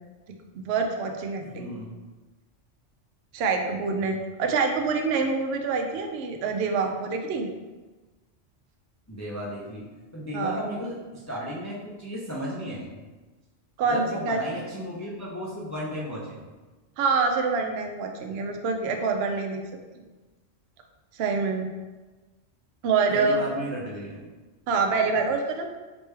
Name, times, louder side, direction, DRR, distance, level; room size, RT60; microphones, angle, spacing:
voice 1, 0.5-1.8 3.3-7.5 10.3-10.6 13.8-14.4 17.0-19.6 21.1-21.7 22.8-23.4 24.7-25.7, right 4 dB, 65° right, 3 dB, 0.7 m, -26 dB
voice 2, 1.4-2.0 9.1-9.9 10.1-13.0 13.8-16.4 23.1-24.2, equal, 20° left, -5 dB, 0.4 m, -34 dB
4.2 x 3.1 x 3.3 m, 1.2 s
omnidirectional pair, 1.3 m